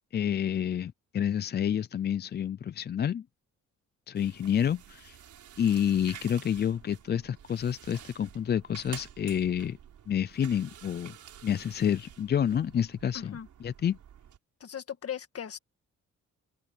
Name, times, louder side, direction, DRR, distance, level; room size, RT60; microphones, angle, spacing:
voice 1, 0.1-3.2 4.1-5.2 5.6-9.8 10.1-11.1 11.4-14.0, left 9 dB, 35° left, 0.4 m, -29 dB
sound 1, 4.2-14.4, right 9 dB, 70° right, 5.1 m, -50 dB
voice 2, 13.1-13.5 14.6-15.6, left 9 dB, 50° left, 1.8 m, -38 dB
open air
cardioid pair, 115°, 30 cm